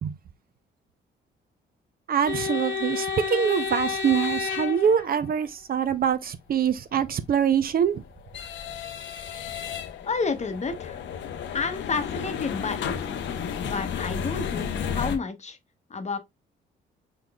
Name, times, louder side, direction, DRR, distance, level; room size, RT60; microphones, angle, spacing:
voice 1, 2.1-8.0, right 8 dB, 50° right, 0.5 m, -24 dB
sound 1, 2.3-5.5 7.5-15.2, left 6 dB, 70° left, 0.7 m, -32 dB
voice 2, 10.0-11.0 11.5-13.1 13.6-15.6 15.9-16.2, left 4 dB, 35° left, 0.9 m, -30 dB
4.9 x 3.9 x 2.3 m
cardioid pair, 90°, 20 cm